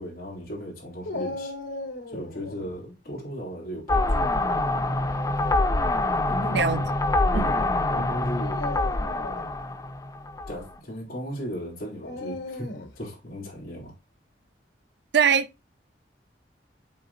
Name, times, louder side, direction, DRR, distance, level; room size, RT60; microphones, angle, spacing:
voice 1, 0.0-1.5 2.1-4.3 6.3-6.9 7.2-8.6 10.5-13.9, equal, 55° left, 3.4 m, -36 dB
Dog, 1.0-2.7 4.8-5.3 6.1-6.2 8.3-9.5 12.0-13.0, left 2 dB, 90° left, 1.4 m, -36 dB
sound 1, 3.9-10.6, left 2 dB, 20° left, 0.5 m, -25 dB
voice 2, 6.5-6.9 7.3-7.5 15.1-15.7, right 7 dB, 70° right, 0.6 m, -22 dB
11.5 x 4.0 x 2.3 m
head